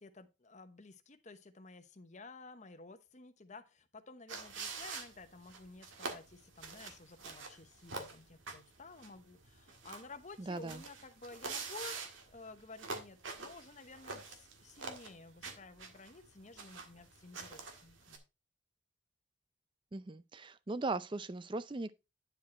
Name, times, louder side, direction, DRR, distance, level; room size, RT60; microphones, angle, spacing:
voice 1, 0.0-18.2, left 3 dB, 35° left, 1.0 m, -53 dB
sound 1, 4.3-18.2, right 4 dB, 75° right, 1.7 m, -46 dB
voice 2, 10.4-10.8 19.9-21.9, right 3 dB, 25° right, 0.4 m, -38 dB
10.0 x 4.9 x 4.3 m
head